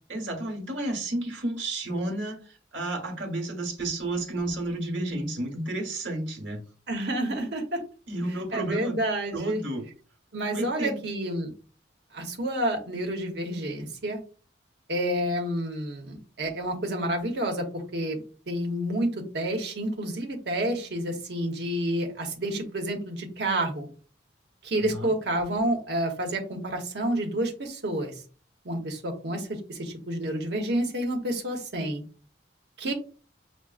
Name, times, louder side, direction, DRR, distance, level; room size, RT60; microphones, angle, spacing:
voice 1, 0.1-6.6 8.1-9.0 9.3-9.9 10.5-11.0 24.9-25.1, right 1 dB, 90° right, 3 dB, 1.1 m, -31 dB
voice 2, 6.9-7.8 8.5-9.6 10.3-11.5 12.1-14.2 14.9-23.9 24.6-28.2 28.6-32.0 32.8-32.9, right 1 dB, 60° right, 2 dB, 0.9 m, -29 dB
6.1 x 2.0 x 2.3 m, 0.38 s
head